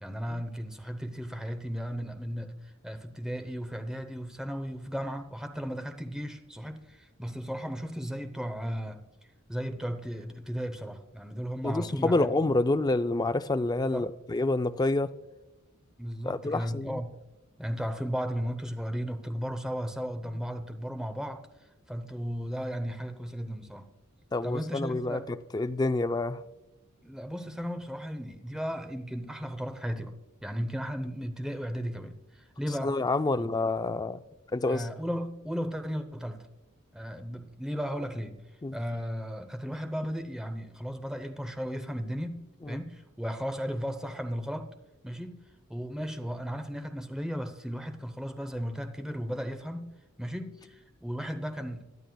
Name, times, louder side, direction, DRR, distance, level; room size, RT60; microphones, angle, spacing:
voice 1, 0.0-9.0 9.5-12.3 13.9-14.1 16.0-17.2 17.6-21.4 21.9-23.9 24.4-25.2 27.0-30.2 30.4-32.9 33.4-33.5 34.7-36.4 36.9-38.4 38.7-44.7 45.0-45.4 45.7-49.9 50.2-51.8, equal, 5° right, 0.7 m, -35 dB
voice 2, 11.6-15.1 16.2-17.0 24.3-26.4 32.8-34.2 34.5-34.9 38.6-38.8 42.6-42.8, left 2 dB, 20° left, 0.3 m, -28 dB
21.5 x 11.0 x 2.3 m
head